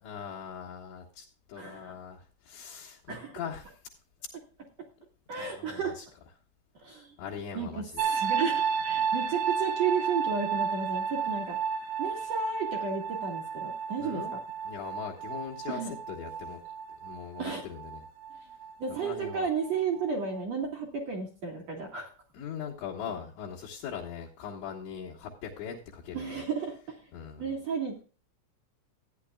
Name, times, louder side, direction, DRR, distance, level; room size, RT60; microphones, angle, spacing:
voice 1, 0.0-3.8 5.4-6.1 7.2-8.1 14.0-14.3 14.6-16.6 17.0-18.0 19.0-19.5 22.3-26.5 27.1-27.6, left 7 dB, 65° left, -4 dB, 3.6 m, -41 dB
voice 2, 1.6-1.9 3.1-3.4 5.3-6.0 6.8-7.1 7.5-11.6 12.0-14.2 15.7-15.9 17.4-17.6 18.8-22.1 26.1-27.0 27.4-28.0, right 5 dB, 55° right, 1 dB, 2.0 m, -33 dB
sound 1, 8.0-19.7 20.0-20.4, right 6 dB, 80° right, 4.1 m, -32 dB
15.5 x 10.0 x 2.3 m, 0.36 s
omnidirectional pair, 5.9 m